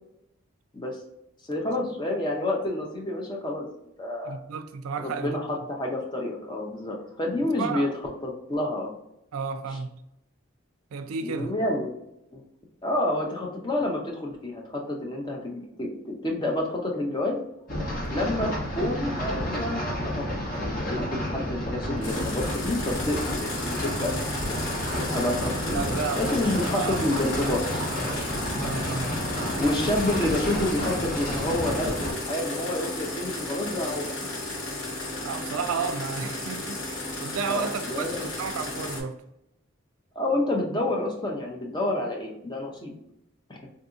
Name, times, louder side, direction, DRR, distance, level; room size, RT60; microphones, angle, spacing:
voice 1, 1.5-3.7 4.0-4.4 5.0-7.9 8.2-8.9 9.7-9.8 11.2-11.9 12.3-12.4 12.8-17.4 18.1-24.4 24.9-27.6 28.1-28.3 29.6-34.2 37.5-38.3 40.2-42.9, left 1 dB, 20° left, 0.6 m, -29 dB
voice 2, 4.3-5.4 7.6-7.9 9.3-10.0 10.9-11.5 25.7-26.4 26.7-27.0 28.0-28.2 28.6-29.2 35.2-39.2, right 5 dB, 85° right, 0.4 m, -32 dB
sound 1, 17.7-32.1, equal, 40° left, 0.9 m, -31 dB
sound 2, 22.0-39.0, left 2 dB, 75° left, 0.9 m, -34 dB
3.6 x 2.7 x 2.4 m
head